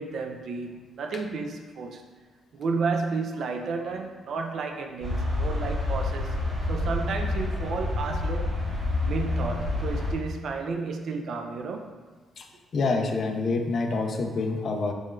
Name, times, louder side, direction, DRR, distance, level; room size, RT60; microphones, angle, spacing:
voice 1, 0.0-2.1 2.5-6.4 6.7-11.9, right 4 dB, 65° right, 4 dB, 0.3 m, -32 dB
sound 1, 5.0-10.1, left 2 dB, 40° right, 1.1 m, -28 dB
voice 2, 12.7-14.9, left 3 dB, 50° left, 4 dB, 0.4 m, -27 dB
3.6 x 3.1 x 2.4 m, 1.4 s
cardioid pair, 90°, 0 cm